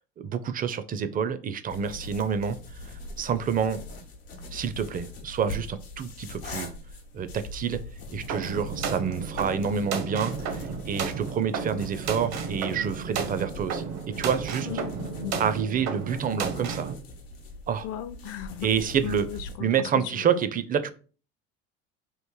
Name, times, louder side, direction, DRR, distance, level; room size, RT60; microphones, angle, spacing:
voice 1, 0.2-3.8 4.5-6.7 7.1-7.8 8.1-14.7 15.4-16.9 17.7-17.9 18.6-19.3 19.6-20.9, right 7 dB, 30° right, 0.4 m, -28 dB
sound 1, 1.7-19.6, left 2 dB, 90° left, 0.9 m, -42 dB
sound 2, 8.3-16.9, right 6 dB, 60° right, 0.7 m, -33 dB
voice 2, 14.7-15.4 17.8-18.7 19.0-19.2 19.6-19.7, left 12 dB, 50° left, 0.5 m, -36 dB
3.1 x 2.5 x 3.6 m
hypercardioid pair, 75°, 30 cm